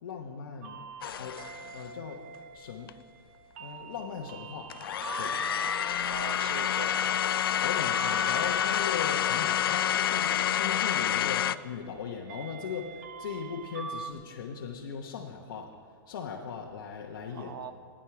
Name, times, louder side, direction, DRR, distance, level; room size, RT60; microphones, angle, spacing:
voice 1, 0.0-0.8 1.2-1.5 1.7-2.2 2.5-2.9 3.6-5.9 7.6-15.7 16.1-17.5, left 6 dB, 60° left, -2 dB, 1.1 m, -39 dB
sound 1, 0.6-14.1, right 4 dB, 35° right, 0.8 m, -43 dB
sound 2, 1.0-1.7 2.9-3.0 4.7-11.6, left 11 dB, 80° left, 0.4 m, -28 dB
voice 2, 6.0-7.3 17.3-17.7, right 6 dB, 80° right, 9 dB, 1.1 m, -41 dB
13.5 x 10.0 x 4.8 m, 2.2 s
hypercardioid pair, 170°, 12 cm